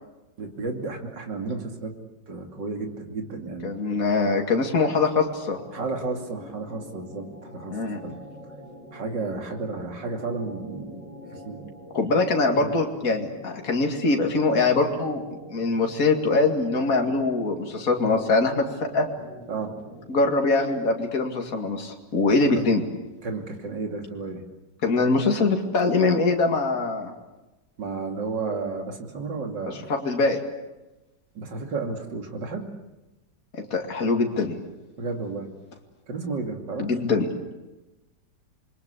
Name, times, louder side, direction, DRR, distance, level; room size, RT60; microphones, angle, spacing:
voice 1, 0.4-1.9 2.3-3.7 5.7-7.8 8.0-8.1 8.9-11.0 11.3-11.7 12.5-12.7 19.5-19.8 22.5-22.6 23.2-24.4 27.8-29.9 31.4-32.6 35.0-35.5 36.1-37.0, right 3 dB, 75° right, 3 dB, 3.4 m, -32 dB
voice 2, 3.6-5.6 7.7-8.0 11.9-15.2 15.5-19.1 20.1-22.8 24.8-27.1 29.7-30.4 33.5-34.6 36.8-37.3, left 3 dB, 50° left, 2 dB, 2.8 m, -23 dB
sound 1, 5.2-20.3, equal, 20° left, 6.9 m, -45 dB
27.5 x 22.5 x 8.3 m, 1.0 s
omnidirectional pair, 1.9 m